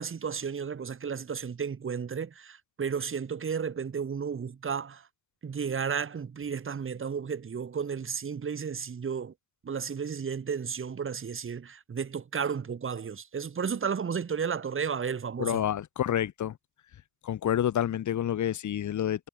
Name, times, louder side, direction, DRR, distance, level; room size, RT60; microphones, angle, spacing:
voice 1, 0.0-5.1 5.4-9.3 9.6-15.6, right 6 dB, 30° right, 0.6 m, -33 dB
voice 2, 15.4-16.6 17.2-19.3, left 10 dB, 45° left, 0.5 m, -28 dB
cardioid pair, 45°, 42 cm